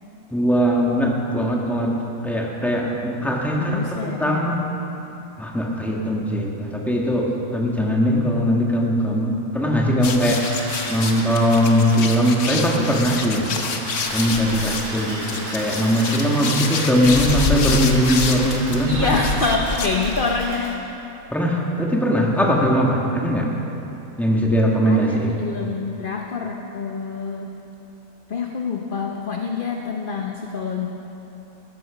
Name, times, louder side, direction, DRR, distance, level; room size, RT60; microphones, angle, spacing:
voice 1, 0.3-1.9 2.2-4.6 5.4-10.4 10.9-13.5 14.1-19.2 21.3-23.5 24.2-25.4, equal, ahead, -2 dB, 1.6 m, -20 dB
voice 2, 3.6-4.5 18.8-20.7 24.9-27.5 28.3-30.9, left 4 dB, 45° left, 1 dB, 0.9 m, -26 dB
sound 1, 10.0-20.4, left 4 dB, 60° left, 1.3 m, -27 dB
sound 2, 10.2-20.7, right 1 dB, 75° right, 4.1 m, -34 dB
14.0 x 13.5 x 5.0 m, 2.9 s
omnidirectional pair, 1.5 m